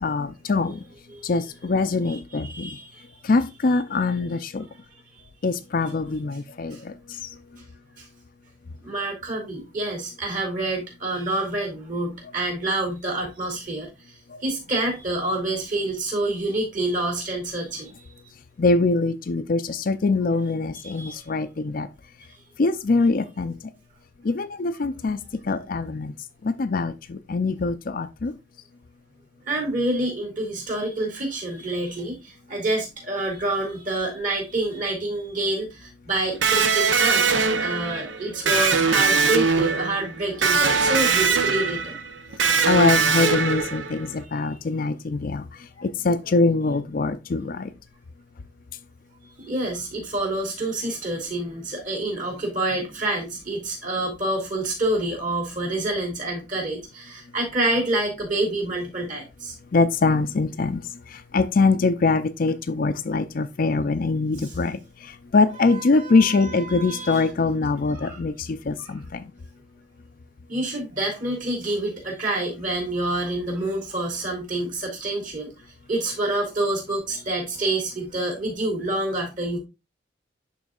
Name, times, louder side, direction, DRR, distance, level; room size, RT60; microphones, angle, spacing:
voice 1, 0.0-0.8 1.2-2.7 3.2-4.7 5.4-6.9 14.3-14.4 18.6-21.9 22.6-23.6 24.2-25.2 25.5-26.1 26.4-28.3 42.7-45.4 45.8-47.7 59.7-60.8 61.1-69.2, left 3 dB, 50° left, 0.4 m, -23 dB
voice 2, 2.1-3.0 6.7-6.8 8.0-8.1 8.8-13.9 14.4-17.9 20.8-21.2 29.5-37.3 37.6-42.0 44.5-44.6 49.4-59.5 64.4-64.5 65.6-67.3 67.9-68.2 68.8-68.9 70.5-75.5 75.9-79.6, right 2 dB, 45° right, 2.9 m, -27 dB
Electric guitar, 36.4-44.1, right 5 dB, 75° right, 0.8 m, -21 dB
11.5 x 3.8 x 2.4 m
head